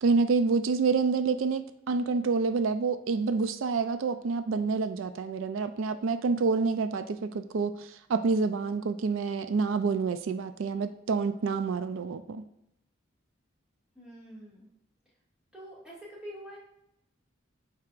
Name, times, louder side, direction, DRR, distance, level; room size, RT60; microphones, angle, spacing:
voice 1, 0.0-12.4, right 4 dB, 80° right, 10 dB, 0.4 m, -28 dB
voice 2, 14.0-14.7 15.5-16.6, equal, 5° right, -7 dB, 2.0 m, -45 dB
12.0 x 4.7 x 2.5 m, 0.81 s
head